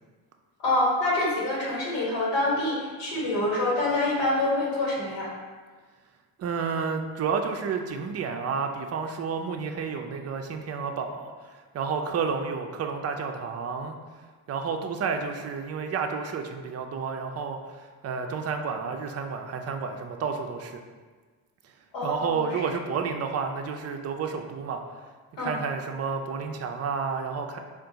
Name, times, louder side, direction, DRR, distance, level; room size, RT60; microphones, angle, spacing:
voice 1, 0.6-5.3 21.9-22.6 25.4-25.5, left 2 dB, 80° left, -5 dB, 1.4 m, -26 dB
voice 2, 6.4-14.0 14.5-20.8 22.0-24.8 25.4-27.6, right 5 dB, 35° right, 5 dB, 0.4 m, -31 dB
3.5 x 2.5 x 3.8 m, 1.4 s
supercardioid pair, 85°, 43 cm